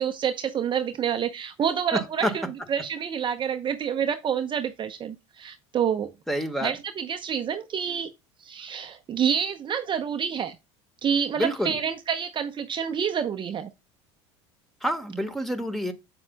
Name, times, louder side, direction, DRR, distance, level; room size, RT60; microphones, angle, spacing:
voice 1, 0.0-2.4 2.7-6.1 6.6-8.1 8.4-10.6 11.0-13.7, right 8 dB, 35° right, 0.8 m, -28 dB
voice 2, 1.9-2.4 6.3-6.8 11.3-11.8 14.8-15.9, equal, ahead, 1.6 m, -28 dB
7.9 x 7.5 x 2.3 m
hypercardioid pair, 75°, 15 cm